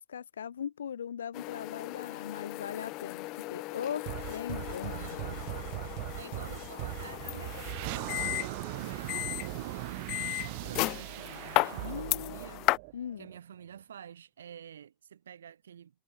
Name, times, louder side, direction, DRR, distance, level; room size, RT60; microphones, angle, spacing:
voice 1, 0.1-4.9 11.7-12.4 12.9-13.3, left 8 dB, 65° left, 2.2 m, -39 dB
sound 1, 1.3-12.8, left 22 dB, 40° left, 2.9 m, -36 dB
sound 2, 4.0-13.4, right 31 dB, 45° right, 1.8 m, -39 dB
voice 2, 4.9-12.7 13.2-15.9, right 8 dB, 65° right, 7.9 m, -49 dB
figure-of-eight pair, 90°, 0 cm